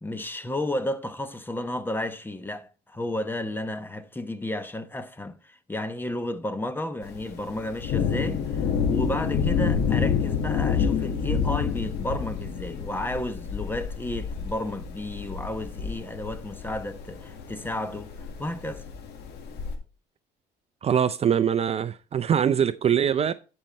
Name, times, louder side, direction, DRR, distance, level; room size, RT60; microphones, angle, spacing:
voice 1, 0.0-18.1 18.4-18.8, left 1 dB, 10° left, 1.0 m, -32 dB
Thunder, 7.0-19.7, left 6 dB, 80° left, 1.9 m, -29 dB
voice 2, 20.8-23.3, right 8 dB, 40° right, 0.5 m, -23 dB
11.0 x 5.4 x 4.4 m
cardioid pair, 110°, 17 cm